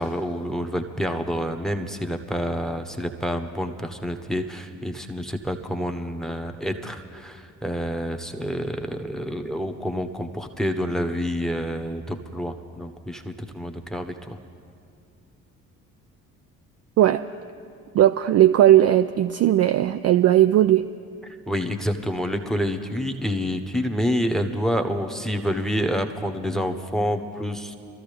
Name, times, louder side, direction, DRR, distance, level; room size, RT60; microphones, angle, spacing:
voice 1, 0.0-14.4 21.3-27.7, equal, ahead, 6 dB, 1.1 m, -28 dB
voice 2, 17.0-17.3 17.9-20.9, right 12 dB, 40° right, 9 dB, 0.4 m, -17 dB
24.5 x 13.5 x 3.4 m, 2.4 s
hypercardioid pair, 50°, 43 cm